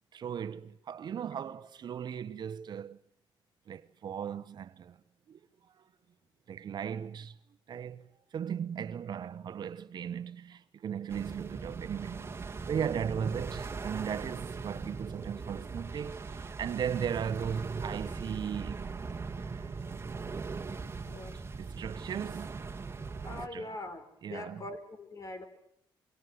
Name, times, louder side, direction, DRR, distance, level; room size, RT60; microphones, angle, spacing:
voice 1, 0.1-3.0 3.7-5.0 5.3-5.8 6.5-7.4 7.7-18.9 19.4-19.9 21.6-22.7 23.5-23.7 24.2-24.6, right 8 dB, 55° right, 1.1 m, -37 dB
sound 1, 11.1-23.5, right 4 dB, 30° right, 1.9 m, -40 dB
voice 2, 21.0-21.4 23.2-25.5, left 2 dB, 40° left, 4.3 m, -42 dB
26.0 x 24.0 x 7.9 m
cardioid pair, 125°, 9 cm